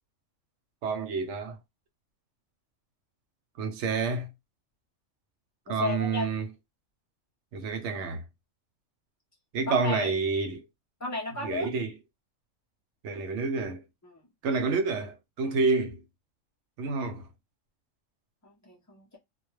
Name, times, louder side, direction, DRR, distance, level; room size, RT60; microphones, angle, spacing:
voice 1, 0.8-1.6 3.6-4.3 5.7-6.5 7.5-8.2 9.5-10.6 11.4-12.0 13.0-13.8 14.4-16.0 16.8-17.3, right 4 dB, 70° right, 0.9 m, -29 dB
voice 2, 5.7-6.3 9.7-10.1 11.0-11.7 14.0-14.2 15.4-15.6 18.4-19.2, left 2 dB, 25° left, 0.4 m, -34 dB
2.2 x 2.2 x 3.1 m
omnidirectional pair, 1.4 m